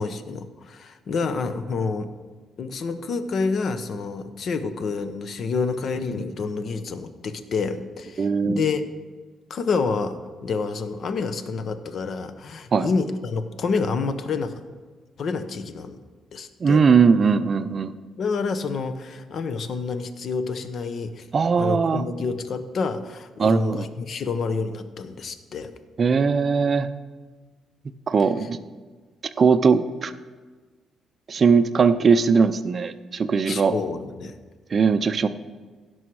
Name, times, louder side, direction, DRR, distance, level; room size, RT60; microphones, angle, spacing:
voice 1, 0.0-2.1 2.6-8.8 9.5-14.6 15.2-16.0 16.3-16.8 18.2-21.3 21.6-25.7 33.5-34.3, left 4 dB, 50° left, 10 dB, 0.8 m, -28 dB
voice 2, 8.2-8.6 12.7-12.9 16.6-17.9 21.3-22.0 23.4-23.9 26.0-26.9 28.1-28.6 29.4-30.1 31.3-33.7 34.7-35.3, right 5 dB, 35° right, 11 dB, 0.5 m, -19 dB
16.5 x 6.2 x 4.8 m, 1.4 s
cardioid pair, 125°, 0 cm